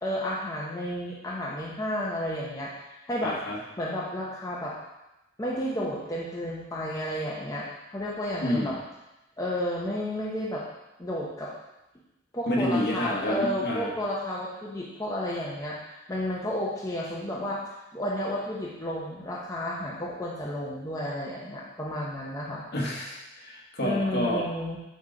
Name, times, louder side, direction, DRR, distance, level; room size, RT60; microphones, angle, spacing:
voice 1, 0.0-3.4 3.8-4.7 5.4-8.8 9.4-10.6 11.0-11.5 12.3-17.6 17.9-22.6 23.8-24.8, left 1 dB, 15° left, -5 dB, 0.8 m, -32 dB
voice 2, 3.2-3.6 8.4-8.7 12.5-13.9 22.7-24.4, left 1 dB, 55° left, -2 dB, 1.4 m, -29 dB
9.2 x 3.2 x 3.8 m, 0.94 s
head